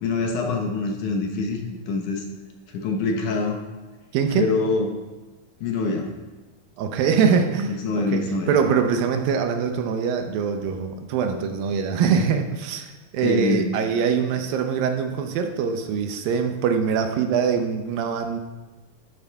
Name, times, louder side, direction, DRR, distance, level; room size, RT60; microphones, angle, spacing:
voice 1, 0.0-2.2 2.7-3.6 4.3-5.0 5.6-6.1 7.8-8.5 13.2-13.7, left 3 dB, 65° left, 2 dB, 2.3 m, -25 dB
voice 2, 4.1-4.5 6.8-8.2 8.5-18.4, right 6 dB, 80° right, 6 dB, 2.5 m, -23 dB
12.5 x 10.0 x 3.5 m, 1.2 s
omnidirectional pair, 4.2 m